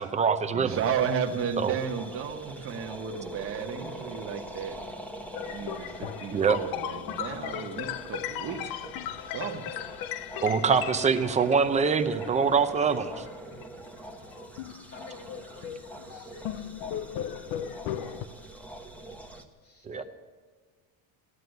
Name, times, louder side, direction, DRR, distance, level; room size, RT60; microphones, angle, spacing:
voice 1, 0.0-0.8 1.6-1.8 6.3-6.6 10.4-13.3 19.8-20.0, right 5 dB, 15° right, 8 dB, 0.7 m, -24 dB
voice 2, 0.5-4.8 5.4-8.9 9.3-9.6, right 7 dB, 35° right, 3 dB, 1.4 m, -33 dB
sound 1, 0.7-19.4, right 1 dB, 5° left, 1.0 m, -44 dB
sound 2, 5.3-13.7 14.2-18.3, left 11 dB, 60° left, 0.7 m, -37 dB
voice 3, 14.9-16.7 19.6-20.0, left 1 dB, 35° left, 4 dB, 2.8 m, -51 dB
16.0 x 11.0 x 7.9 m, 1.5 s
cardioid pair, 180°, 41 cm